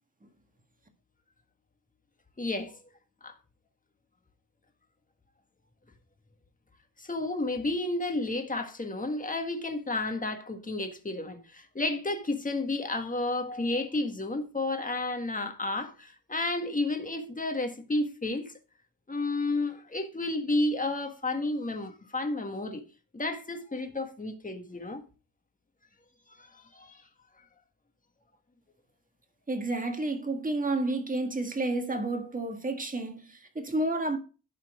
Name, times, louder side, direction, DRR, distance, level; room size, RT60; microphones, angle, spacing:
voice 1, 2.4-2.8 3.2-3.3 7.0-18.5 19.1-22.8 23.1-25.0 26.4-27.0, left 2 dB, 25° left, 1.6 m, -31 dB
voice 2, 29.5-34.2, right 2 dB, 25° right, 1.7 m, -30 dB
11.5 x 4.5 x 5.0 m
wide cardioid pair, 95°, 34 cm